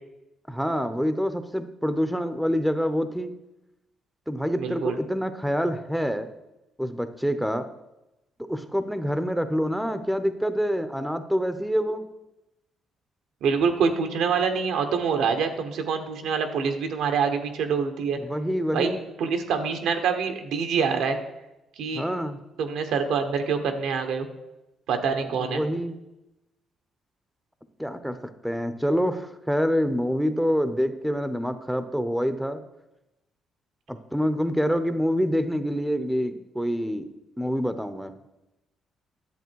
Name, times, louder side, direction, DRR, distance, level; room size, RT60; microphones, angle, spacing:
voice 1, 0.5-3.4 4.3-6.3 6.8-7.7 8.5-12.1 18.2-19.0 21.9-22.4 25.3-26.0 27.8-28.2 28.4-32.6 33.9-37.1 37.4-38.2, equal, ahead, 10 dB, 0.7 m, -26 dB
voice 2, 4.6-5.0 13.4-18.2 18.7-18.9 19.2-21.2 21.8-22.0 22.6-24.3 24.9-25.6, right 6 dB, 85° right, 6 dB, 1.2 m, -25 dB
11.0 x 7.5 x 4.6 m, 0.95 s
cardioid pair, 90°, 0 cm